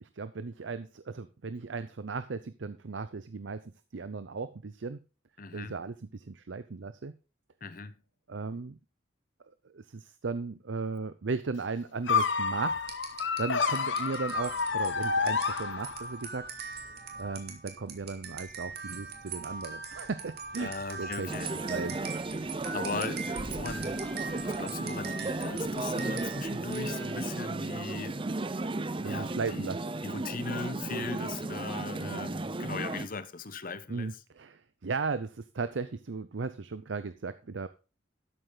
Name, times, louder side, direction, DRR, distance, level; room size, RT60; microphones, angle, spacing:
voice 1, 0.0-3.6 3.9-5.0 5.5-7.1 8.3-8.8 9.6-12.9 13.4-16.5 17.2-21.3 21.5-21.9 29.0-29.8 32.0-32.2 33.9-37.7, right 4 dB, 80° right, 0.6 m, -36 dB
voice 2, 5.4-5.8 7.6-8.0 20.6-21.6 22.7-24.0 24.4-28.6 29.0-29.7 30.0-34.2, left 4 dB, 50° left, 1.0 m, -39 dB
sound 1, 12.1-16.2, left 5 dB, 80° left, 1.1 m, -29 dB
sound 2, 12.8-27.3, right 5 dB, 60° right, 2.4 m, -42 dB
sound 3, 21.3-33.1, right 2 dB, 30° right, 0.6 m, -34 dB
12.5 x 8.0 x 3.9 m
head